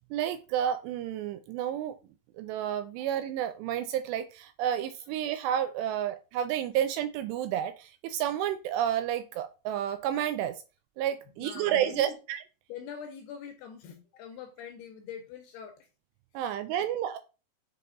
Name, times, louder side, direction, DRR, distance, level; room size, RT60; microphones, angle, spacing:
voice 1, 0.1-1.9 2.4-10.6 11.0-12.4 16.3-17.2, right 10 dB, 85° right, 9 dB, 2.5 m, -30 dB
voice 2, 11.4-12.2 12.7-15.9 16.4-16.9, left 7 dB, 80° left, 5 dB, 2.5 m, -44 dB
7.6 x 3.4 x 3.8 m, 0.32 s
omnidirectional pair, 5.2 m